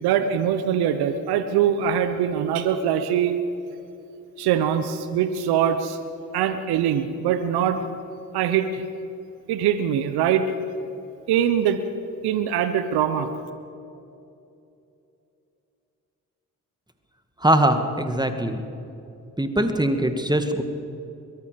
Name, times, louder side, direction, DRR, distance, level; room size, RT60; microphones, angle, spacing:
voice 1, 0.0-3.4 4.4-6.0 6.3-7.8 8.3-8.8 9.5-10.5 11.3-11.8 12.2-13.3, right 9 dB, 75° right, 10 dB, 1.2 m, -22 dB
voice 2, 17.4-18.6 19.4-20.6, right 1 dB, 10° right, 7 dB, 2.3 m, -21 dB
22.5 x 22.5 x 5.4 m, 2.8 s
hypercardioid pair, 45°, 39 cm